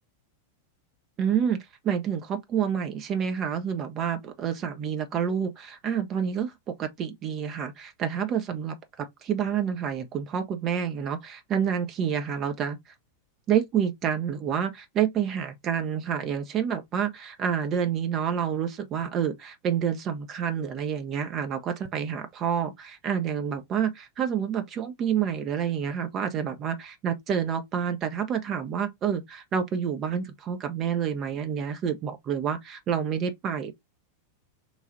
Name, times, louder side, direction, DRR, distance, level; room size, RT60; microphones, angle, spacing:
voice 1, 1.2-12.8 13.5-33.7, right 8 dB, 30° right, 0.6 m, -28 dB
3.2 x 2.3 x 3.8 m
figure-of-eight pair, 90°, 0 cm